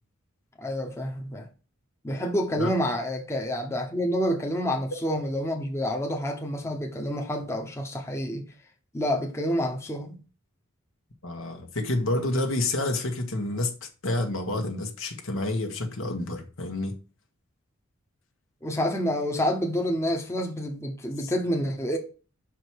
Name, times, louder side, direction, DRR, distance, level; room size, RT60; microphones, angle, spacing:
voice 1, 0.6-1.5 2.0-8.4 8.9-10.2 18.6-22.0, equal, 15° left, 0.9 m, -28 dB
voice 2, 11.2-17.0 21.2-21.3, left 2 dB, 70° left, 1.3 m, -29 dB
5.9 x 4.9 x 4.6 m
head